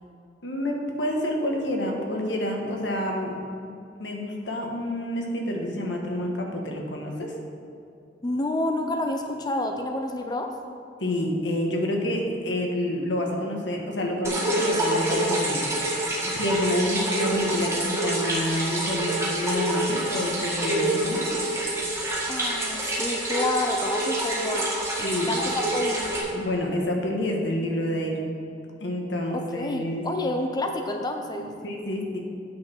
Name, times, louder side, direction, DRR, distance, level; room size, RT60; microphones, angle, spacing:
voice 1, 0.4-3.7 4.0-7.3 11.0-21.4 25.0-25.3 26.3-28.2 28.8-30.0 31.6-32.2, left 1 dB, 90° left, 0 dB, 1.5 m, -28 dB
voice 2, 8.2-10.5 22.3-26.1 29.3-31.5, left 1 dB, 25° left, 4 dB, 0.5 m, -29 dB
sound 1, 14.2-26.2, right 1 dB, 15° right, 1.5 m, -27 dB
8.6 x 6.3 x 5.6 m, 2.5 s
head